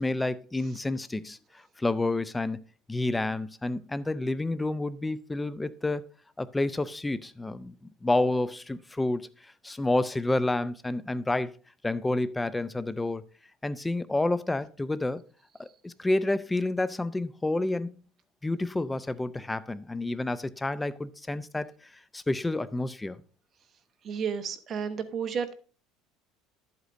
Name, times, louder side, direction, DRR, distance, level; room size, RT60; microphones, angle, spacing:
voice 1, 0.0-2.6 2.9-6.0 6.4-11.6 11.8-13.2 13.6-15.2 15.6-17.9 18.4-21.7 22.1-23.2, left 2 dB, 10° left, 0.4 m, -29 dB
voice 2, 24.0-25.5, right 6 dB, 35° right, 1.0 m, -32 dB
11.0 x 8.1 x 2.6 m
cardioid pair, 130°, 0 cm